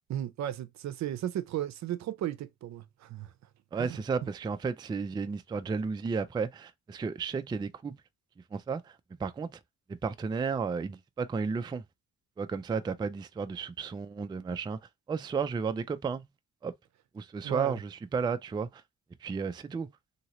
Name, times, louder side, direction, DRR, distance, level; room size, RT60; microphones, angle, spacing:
voice 1, 0.1-3.3 3.8-4.0 17.4-17.8, right 11 dB, 65° right, 0.6 m, -35 dB
voice 2, 3.7-8.0 8.5-9.6 9.9-11.8 12.4-14.8 15.1-16.3 16.6-16.7 17.1-18.8 19.2-20.0, right 5 dB, 15° right, 0.3 m, -33 dB
2.9 x 2.8 x 2.9 m
cardioid pair, 90°, 30 cm